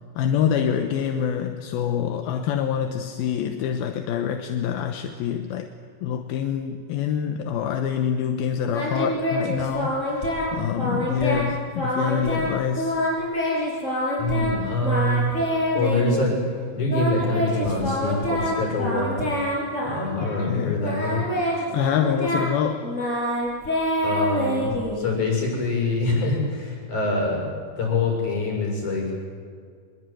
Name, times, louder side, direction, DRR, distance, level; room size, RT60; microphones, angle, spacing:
voice 1, 0.2-5.7 6.0-13.0 20.2-20.8 21.7-22.9, left 8 dB, 80° left, 6 dB, 2.9 m, -26 dB
Singing, 8.7-10.5 10.8-11.5 11.8-12.5 12.8-14.5 14.8-16.3 16.9-20.5 20.8-25.2, equal, 20° left, 7.2 m, -26 dB
voice 2, 14.2-15.4 15.7-16.4 16.7-19.2 19.8-21.2 24.0-27.5 27.8-29.1, left 2 dB, 50° left, 0 dB, 8.5 m, -25 dB
25.0 x 22.0 x 9.2 m, 2.1 s
omnidirectional pair, 4.4 m